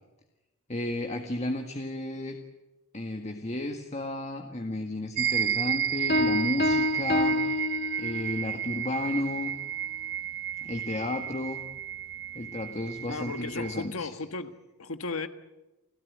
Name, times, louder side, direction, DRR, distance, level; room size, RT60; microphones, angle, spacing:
voice 1, 0.7-2.4 2.9-7.4 8.0-9.5 10.6-11.6 12.3-14.1, left 1 dB, 30° left, 5 dB, 1.7 m, -33 dB
sound 1, 5.2-13.9, right 9 dB, 55° right, 0.9 m, -32 dB
Piano, 6.1-8.5, left 2 dB, 50° left, 1.8 m, -27 dB
voice 2, 13.1-15.3, left 3 dB, 70° left, 9 dB, 1.5 m, -35 dB
29.5 x 17.0 x 9.4 m, 1.0 s
head